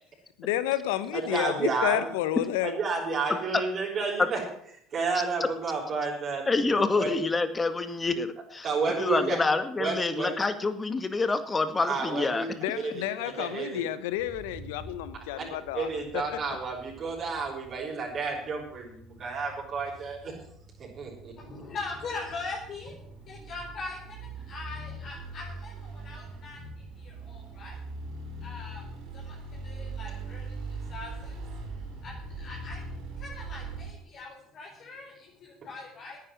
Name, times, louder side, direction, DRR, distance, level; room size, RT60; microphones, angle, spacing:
voice 1, 0.4-2.8 12.5-16.4, left 13 dB, 85° left, 15 dB, 1.1 m, -30 dB
voice 2, 1.3-2.0 2.6-4.4 4.9-7.1 8.6-9.4 9.8-10.3 11.9-12.5 12.8-13.8 15.4-15.5 15.7-20.5 20.8-21.3, right 4 dB, 45° right, -3 dB, 6.4 m, -31 dB
voice 3, 6.5-8.7 9.0-12.5, left 3 dB, 25° left, 11 dB, 1.9 m, -27 dB
sound 1, 14.1-33.9, right 3 dB, 75° right, 5.0 m, -42 dB
voice 4, 21.4-27.8 28.4-28.9 29.1-36.2, left 3 dB, 50° left, -3 dB, 4.5 m, -42 dB
11.0 x 9.5 x 9.5 m, 0.67 s
supercardioid pair, 80°, 0 cm